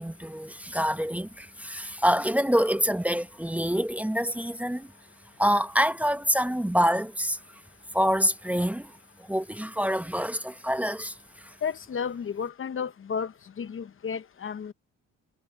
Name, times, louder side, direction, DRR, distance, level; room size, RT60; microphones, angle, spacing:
voice 1, 0.0-4.9 5.4-7.4 7.9-8.9 9.2-11.2, equal, 5° right, 1.0 m, -26 dB
voice 2, 11.6-13.3 13.6-14.7, left 6 dB, 45° left, 1.0 m, -32 dB
cardioid pair, 90°, 30 cm